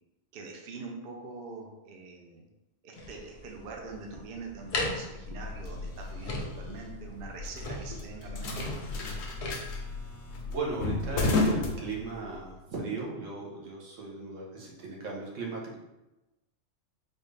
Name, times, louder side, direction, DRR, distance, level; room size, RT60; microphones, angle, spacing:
voice 1, 0.3-2.5 2.8-8.6, right 4 dB, 60° right, 1 dB, 0.7 m, -44 dB
sound 1, 2.9-9.5, left 2 dB, 50° left, 0.4 m, -38 dB
sound 2, 5.2-12.5, left 3 dB, 65° left, 0.8 m, -33 dB
voice 2, 10.5-15.8, right 4 dB, 80° right, -2 dB, 1.2 m, -37 dB
4.1 x 2.5 x 3.2 m, 1.0 s
omnidirectional pair, 1.3 m